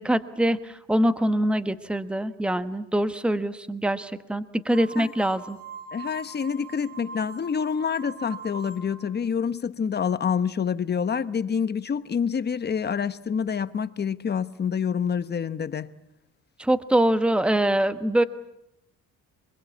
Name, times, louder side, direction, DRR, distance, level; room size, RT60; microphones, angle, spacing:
voice 1, 0.0-5.6 16.6-18.2, right 1 dB, 5° right, 1.2 m, -24 dB
sound 1, 4.7-9.1, right 4 dB, 50° right, 6.5 m, -42 dB
voice 2, 5.9-15.9, left 7 dB, 35° left, 1.1 m, -27 dB
25.0 x 22.0 x 8.4 m
cardioid pair, 100°, 31 cm